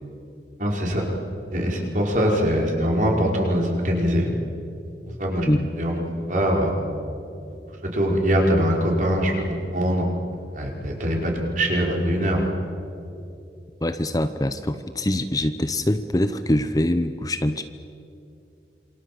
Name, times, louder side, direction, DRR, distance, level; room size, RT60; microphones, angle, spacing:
voice 1, 0.6-1.1 1.5-4.3 5.2-5.5 5.8-6.0 6.3-6.7 7.8-10.1 10.5-12.5, equal, 45° right, -1 dB, 5.4 m, -22 dB
voice 2, 13.8-17.6, left 1 dB, 20° left, 10 dB, 0.8 m, -23 dB
27.5 x 26.0 x 7.8 m, 2.7 s
head